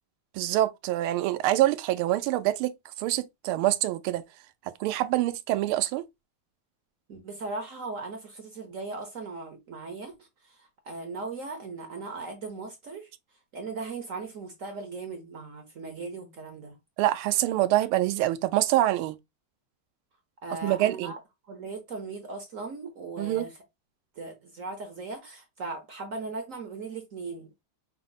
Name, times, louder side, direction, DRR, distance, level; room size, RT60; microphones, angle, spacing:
voice 1, 0.3-4.2 4.8-6.1 17.0-19.2 20.6-21.1 23.2-23.5, right 15 dB, 85° right, 1.5 m, -25 dB
voice 2, 7.1-13.1 13.5-16.8 20.4-21.2 21.4-23.6 24.1-27.5, right 3 dB, 60° right, 0.8 m, -38 dB
5.8 x 2.0 x 3.9 m
omnidirectional pair, 2.3 m